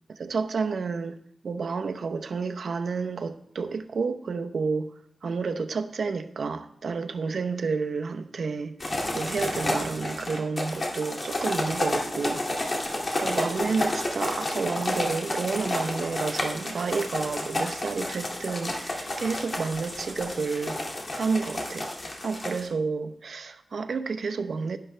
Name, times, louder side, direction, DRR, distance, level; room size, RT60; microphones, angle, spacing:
voice 1, 0.1-1.2 1.4-4.9 5.2-20.8 21.1-21.9 22.2-24.8, right 4 dB, 70° right, 0.8 m, -30 dB
sound 1, 8.8-22.7, left 1 dB, 40° left, 2.3 m, -31 dB
11.5 x 11.5 x 3.3 m
wide cardioid pair, 80°, 0 cm